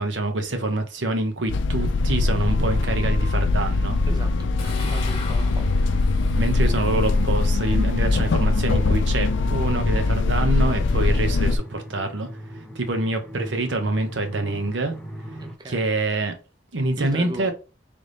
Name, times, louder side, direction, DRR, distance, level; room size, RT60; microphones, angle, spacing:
voice 1, 0.0-4.0 6.4-12.3 12.7-14.9 15.6-16.4 16.7-17.5, right 2 dB, 80° right, 0.9 m, -26 dB
sound 1, 1.5-11.6, left 3 dB, 85° left, 0.5 m, -22 dB
voice 2, 4.1-5.8 15.4-15.9 17.0-17.5, right 2 dB, 20° right, 0.4 m, -37 dB
sound 2, 4.6-9.9, left 1 dB, 35° left, 1.1 m, -37 dB
sound 3, 7.7-15.5, equal, ahead, 0.9 m, -40 dB
3.9 x 3.5 x 3.4 m
head